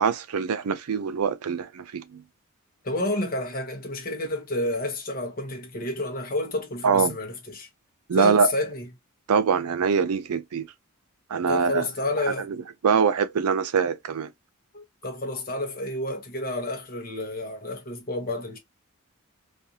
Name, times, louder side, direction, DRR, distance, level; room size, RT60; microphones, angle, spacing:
voice 1, 0.0-2.2 6.8-7.2 8.1-8.5 9.3-10.7 11.3-11.9 12.8-14.3, right 6 dB, 85° right, 0.4 m, -23 dB
voice 2, 2.8-7.7 8.1-8.9 11.5-12.5 14.7-18.6, left 2 dB, 40° left, 0.8 m, -30 dB
2.5 x 2.4 x 2.7 m
head